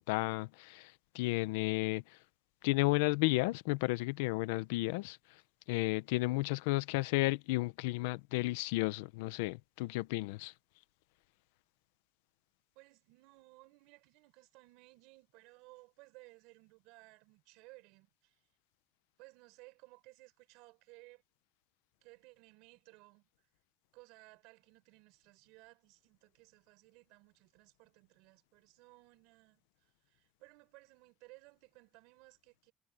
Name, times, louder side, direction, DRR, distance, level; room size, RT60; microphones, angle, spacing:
voice 1, 0.0-2.2 2.6-5.4 5.7-10.5, left 21 dB, 85° left, 0.9 m, -33 dB
voice 2, 12.7-18.4 19.2-21.2 22.0-23.5 23.9-32.7, right 25 dB, 80° right, 4.5 m, -60 dB
supercardioid pair, 80°, 0 cm